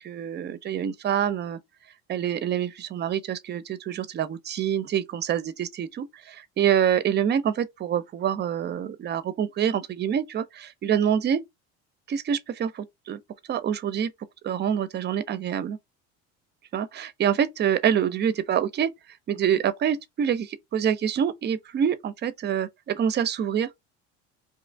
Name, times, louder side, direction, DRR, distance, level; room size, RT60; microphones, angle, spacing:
voice 1, 0.0-1.6 2.1-11.4 12.1-13.2 13.5-14.1 14.4-15.8 16.7-18.9 19.3-23.7, right 9 dB, 30° right, 0.5 m, -26 dB
2.9 x 2.4 x 3.3 m
supercardioid pair, 95°, 33 cm